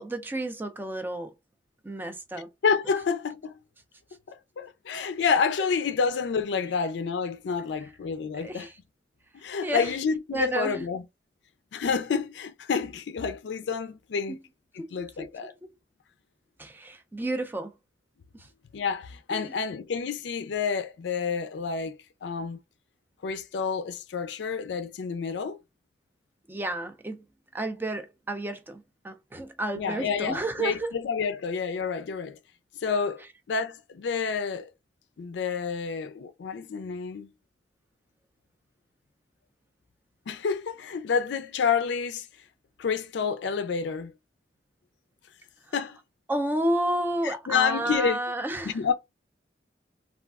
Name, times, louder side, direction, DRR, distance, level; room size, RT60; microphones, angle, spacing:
voice 1, 0.0-1.3 1.8-2.5 8.3-8.8 9.6-9.9 10.3-10.8 14.3-14.4 14.8-14.9 15.2-15.3 16.6-17.7 18.3-18.5 19.3-19.5 26.5-27.2 27.5-30.9 46.3-48.8, right 1 dB, 10° right, 0.4 m, -31 dB
voice 2, 2.6-3.6 4.3-8.7 9.3-11.0 11.7-14.4 14.7-15.5 18.7-22.6 23.2-25.6 29.8-32.4 32.7-34.7 35.2-37.3 40.3-42.3 42.8-44.1 45.7-46.0 47.2-48.2 48.6-48.9, left 5 dB, 75° left, 0.4 m, -29 dB
3.4 x 2.3 x 2.3 m
head